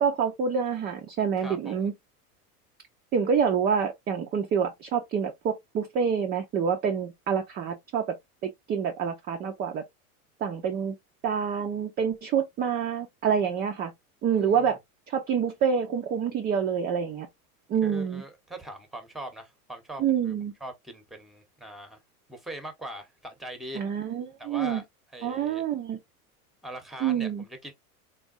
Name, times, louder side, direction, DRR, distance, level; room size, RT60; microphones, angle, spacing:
voice 1, 0.0-1.9 3.1-8.2 8.4-9.8 10.4-11.0 11.2-13.9 14.2-14.8 15.1-17.3 17.7-18.2 20.0-20.5 23.7-24.8 25.2-26.0 27.0-27.4, right 7 dB, 25° right, 0.3 m, -27 dB
voice 2, 1.4-1.9 14.3-14.8 17.8-20.4 20.6-22.0 22.3-23.8 24.4-24.8 25.1-25.6 26.6-27.7, right 1 dB, ahead, 0.8 m, -41 dB
3.4 x 2.3 x 2.4 m
hypercardioid pair, 90°, 45 cm